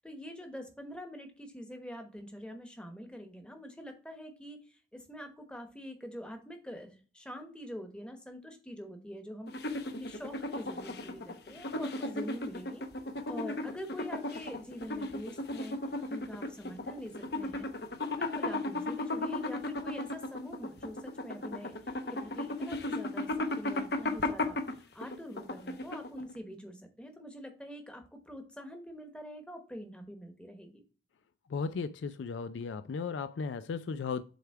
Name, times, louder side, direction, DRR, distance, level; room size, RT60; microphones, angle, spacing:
voice 1, 0.0-12.8 13.3-15.8 16.1-17.7 18.0-23.3 23.6-30.8, equal, 5° left, 1.0 m, -45 dB
sound 1, 9.5-26.3, left 2 dB, 60° left, 0.8 m, -35 dB
voice 2, 31.5-34.2, left 5 dB, 85° left, 0.4 m, -35 dB
7.8 x 3.4 x 4.7 m
head